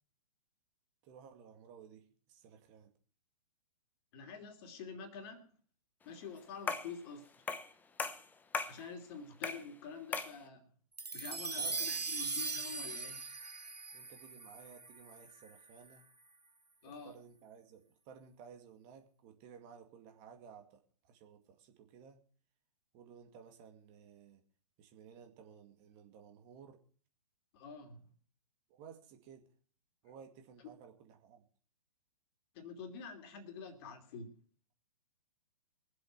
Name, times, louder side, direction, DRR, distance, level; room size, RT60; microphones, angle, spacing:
voice 1, 1.0-2.9 11.5-12.2 13.9-16.1 16.8-22.2 22.9-24.4 24.8-26.8 28.7-29.5 30.0-31.4, right 7 dB, 35° right, 2.2 m, -56 dB
voice 2, 4.1-5.6 6.0-7.4 8.7-10.7 11.1-13.2 16.8-17.1 27.5-28.1 32.5-34.3, left 5 dB, 40° left, 2.9 m, -47 dB
sound 1, 6.7-7.0 7.5-7.7 8.0-8.8 9.4-9.7 10.1-10.4, left 4 dB, 10° left, 0.8 m, -37 dB
sound 2, 11.0-15.5, right 4 dB, 85° right, 1.6 m, -40 dB
23.0 x 7.9 x 4.6 m
figure-of-eight pair, 120°, 20 cm